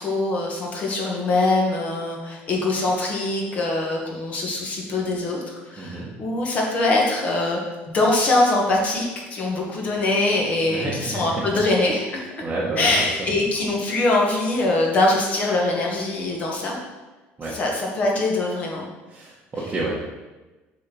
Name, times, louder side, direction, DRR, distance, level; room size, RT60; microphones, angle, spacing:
voice 1, 0.0-7.6 7.9-12.3 12.8-16.8 17.5-18.9, left 2 dB, 35° left, -1 dB, 1.5 m, -23 dB
voice 2, 5.8-6.1 10.7-11.4 12.4-13.1 17.4-17.5 19.1-20.0, right 2 dB, 20° right, -6 dB, 1.2 m, -29 dB
7.2 x 4.2 x 6.1 m, 1.2 s
cardioid pair, 175°, 5 cm